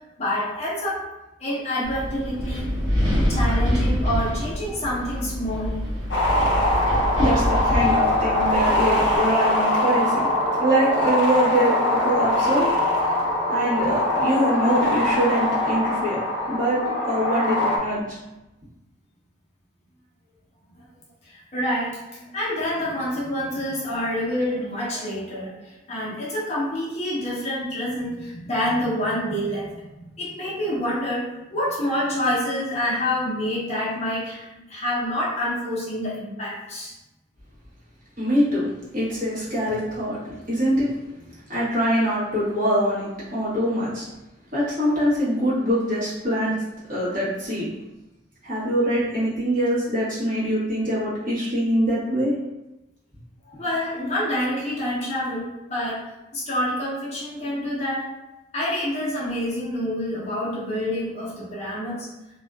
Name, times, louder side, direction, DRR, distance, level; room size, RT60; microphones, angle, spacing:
voice 1, 0.2-1.0 1.4-2.7 3.3-5.8 21.2-29.7 30.1-36.9 53.4-55.4 55.7-56.0 56.3-58.1 58.5-62.1, left 1 dB, 35° left, -7 dB, 0.7 m, -27 dB
Wind, 1.8-9.2, equal, 75° right, 1.2 m, -26 dB
sound 1, 6.1-17.8, left 1 dB, 80° left, 0.5 m, -22 dB
voice 2, 7.2-10.3 10.6-12.7 13.5-18.2 38.2-40.2 40.5-41.0 41.5-44.1 44.5-46.6 46.9-47.7 48.4-52.3, equal, 45° right, -10 dB, 1.2 m, -23 dB
2.6 x 2.4 x 2.2 m, 1.0 s
head